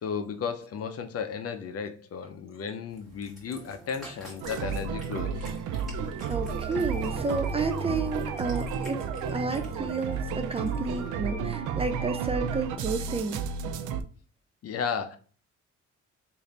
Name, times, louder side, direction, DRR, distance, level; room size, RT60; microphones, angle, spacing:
voice 1, 0.0-5.5 14.6-15.2, left 6 dB, 50° left, 0.6 m, -34 dB
Cat, 2.9-11.1, equal, ahead, 1.8 m, -49 dB
sound 1, 3.5-12.9, left 2 dB, 20° left, 1.7 m, -52 dB
sound 2, 4.4-14.0, right 6 dB, 80° right, 0.5 m, -32 dB
voice 2, 6.3-9.0 9.3-13.4, right 3 dB, 20° right, 0.4 m, -31 dB
3.2 x 2.7 x 3.9 m
cardioid pair, 90°, 30 cm